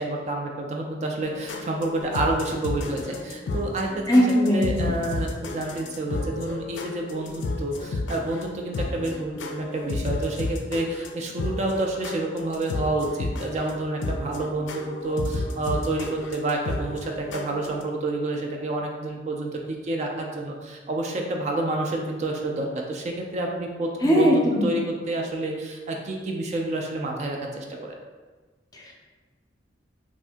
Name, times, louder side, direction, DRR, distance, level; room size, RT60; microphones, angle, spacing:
voice 1, 0.0-28.0, right 2 dB, 40° right, 1 dB, 0.3 m, -29 dB
sound 1, 1.2-17.8, left 2 dB, 85° left, 0.4 m, -32 dB
voice 2, 4.1-5.0 24.0-24.7 28.7-28.9, equal, 20° left, -2 dB, 0.5 m, -20 dB
2.6 x 2.5 x 3.4 m, 1.3 s
head